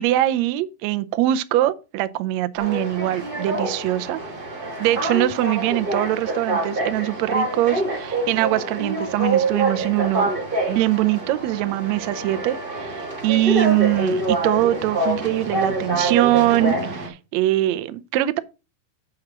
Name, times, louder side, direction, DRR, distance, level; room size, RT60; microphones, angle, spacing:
voice 1, 0.0-4.2 4.8-10.3 10.7-18.4, right 15 dB, 85° right, 1.5 m, -22 dB
sound 1, 2.6-17.1, right 2 dB, 25° right, 1.1 m, -26 dB
7.7 x 4.9 x 5.9 m
omnidirectional pair, 3.9 m